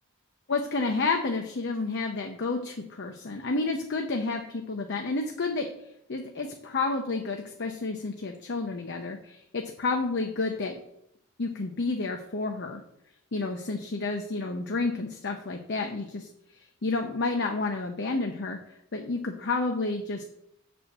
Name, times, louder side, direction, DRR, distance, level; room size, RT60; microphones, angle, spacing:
voice 1, 0.5-5.7 6.1-10.7 11.4-12.8 13.3-16.3 16.8-18.6 18.9-20.2, left 3 dB, 55° left, 3 dB, 0.7 m, -30 dB
7.5 x 4.4 x 6.6 m, 0.77 s
head